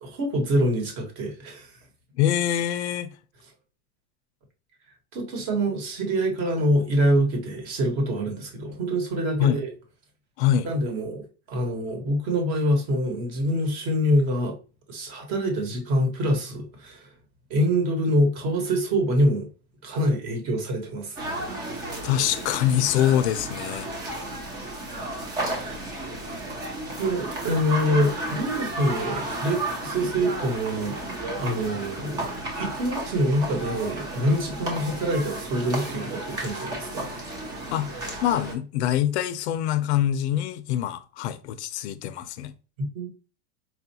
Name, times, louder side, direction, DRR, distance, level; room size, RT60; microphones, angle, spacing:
voice 1, 0.0-1.7 5.1-9.7 10.6-14.5 14.9-17.1 17.5-19.5 19.8-21.2 21.6-21.9 25.4-25.8 26.4-26.5 27.0-30.9 31.4-32.3 32.6-37.1 42.8-43.1, equal, 40° right, 1.1 m, -25 dB
voice 2, 2.2-3.1 9.4-9.6 10.4-10.7 22.0-23.9 37.7-42.5, left 11 dB, 70° left, 0.5 m, -24 dB
sound 1, 21.2-38.5, right 2 dB, 15° right, 0.3 m, -33 dB
4.4 x 2.3 x 2.8 m
supercardioid pair, 160°, 34 cm